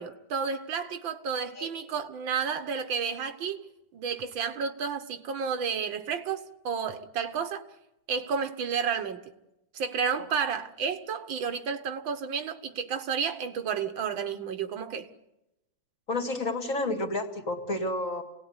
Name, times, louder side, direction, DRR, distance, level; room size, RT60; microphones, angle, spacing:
voice 1, 0.0-3.6 3.9-7.6 8.1-9.3 9.7-15.1, right 6 dB, 80° right, 2.0 m, -31 dB
voice 2, 16.1-18.2, left 2 dB, 40° left, 2.7 m, -30 dB
27.5 x 18.0 x 9.7 m
omnidirectional pair, 2.1 m